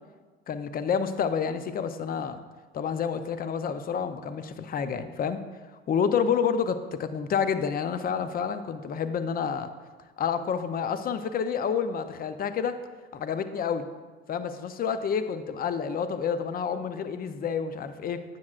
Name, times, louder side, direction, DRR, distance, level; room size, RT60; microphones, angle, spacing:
voice 1, 0.5-2.4 2.7-5.4 5.9-9.7 10.2-12.8 13.1-13.8 14.3-18.2, left 7 dB, 30° left, 11 dB, 0.5 m, -29 dB
9.4 x 7.6 x 2.4 m, 1.3 s
hypercardioid pair, 80°, 30 cm